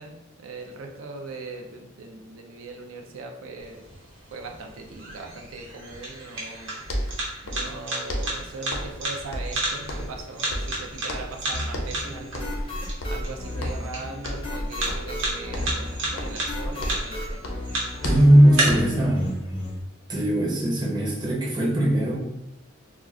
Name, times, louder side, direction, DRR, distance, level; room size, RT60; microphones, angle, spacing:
voice 1, 0.0-3.8 4.3-6.8 7.4-17.4, right 3 dB, 80° right, 2 dB, 0.4 m, -40 dB
sound 1, 3.6-18.6, right 2 dB, 65° right, 0.9 m, -34 dB
sound 2, 6.5-6.6 6.8-7.8 8.1-9.0 9.3-10.2 10.5-11.4 11.7-12.0 12.3-12.7 13.0-13.9 14.2-14.6 14.9-15.2 15.5-17.2 17.4-19.0, equal, 90° left, 0.5 m, -33 dB
sound 3, 11.5-19.8, left 1 dB, 25° left, 0.5 m, -33 dB
voice 2, 18.0-19.2 20.1-22.2, right 1 dB, 20° right, -5 dB, 0.6 m, -19 dB
2.3 x 2.2 x 3.6 m, 0.94 s
head